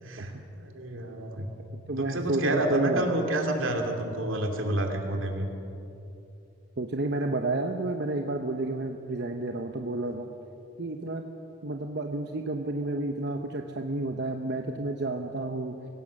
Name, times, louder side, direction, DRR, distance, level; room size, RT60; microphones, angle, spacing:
voice 1, 0.0-1.5 2.0-5.5, right 1 dB, 80° right, 3 dB, 2.7 m, -29 dB
voice 2, 1.9-3.3 6.8-10.3 10.8-11.2 11.6-15.8, right 2 dB, 55° right, 4 dB, 0.9 m, -30 dB
24.0 x 17.0 x 6.5 m, 2.8 s
head